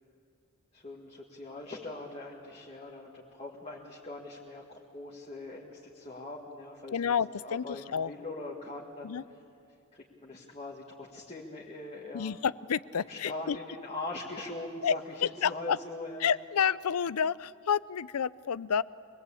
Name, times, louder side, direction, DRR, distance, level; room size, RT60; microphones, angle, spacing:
voice 1, 0.7-7.1 7.4-9.2 9.9-12.4 13.0-16.3, left 2 dB, 30° left, -3 dB, 1.8 m, -42 dB
voice 2, 6.9-8.1 9.0-9.2 12.1-13.6 14.8-15.0 15.2-15.8 16.2-18.8, left 7 dB, 85° left, 20 dB, 0.5 m, -29 dB
25.5 x 20.5 x 8.5 m, 2.5 s
head